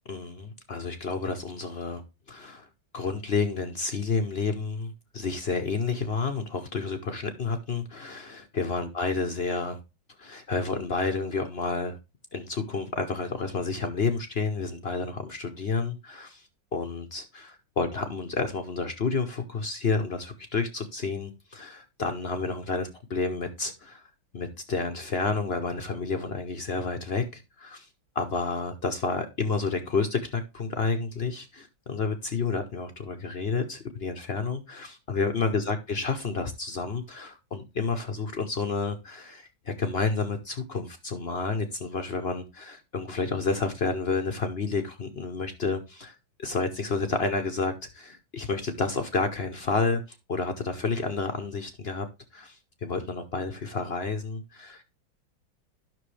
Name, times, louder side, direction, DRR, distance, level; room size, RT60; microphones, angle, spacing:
voice 1, 0.1-2.0 2.3-2.7 2.9-9.8 10.2-12.0 12.3-24.1 24.3-27.9 28.1-52.1 52.3-54.8, left 4 dB, 55° left, 0.6 m, -30 dB
11.0 x 6.1 x 3.2 m
omnidirectional pair, 2.2 m